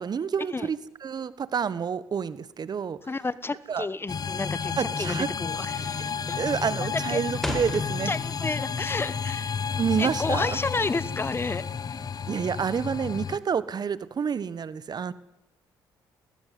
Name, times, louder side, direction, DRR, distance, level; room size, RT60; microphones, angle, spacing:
voice 1, 0.0-3.0 3.7-3.9 4.8-5.3 5.8-6.1 6.4-8.1 9.8-10.5 12.3-15.1, right 7 dB, 50° right, 17 dB, 1.4 m, -29 dB
voice 2, 3.1-7.2 8.1-9.5 10.0-11.6 11.9-12.0, left 3 dB, 25° left, 18 dB, 1.2 m, -31 dB
sound 1, 4.1-13.4, left 6 dB, 45° left, 1.2 m, -31 dB
sound 2, 7.4-8.7 9.0-10.5, equal, 5° left, 4.7 m, -36 dB
19.5 x 18.0 x 9.5 m, 0.89 s
supercardioid pair, 65°, 9 cm